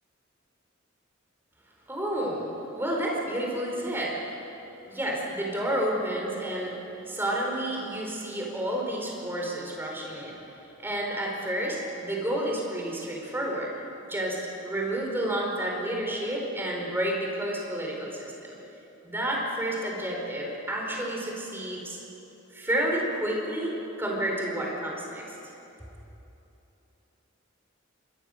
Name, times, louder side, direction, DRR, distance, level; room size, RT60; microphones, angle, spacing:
voice 1, 1.9-4.5 4.9-6.7 7.0-10.4 10.8-13.7 14.1-18.5 19.0-22.0 22.5-25.3, right 1 dB, 10° right, -2 dB, 4.8 m, -30 dB
25.5 x 21.5 x 6.7 m, 3.0 s
head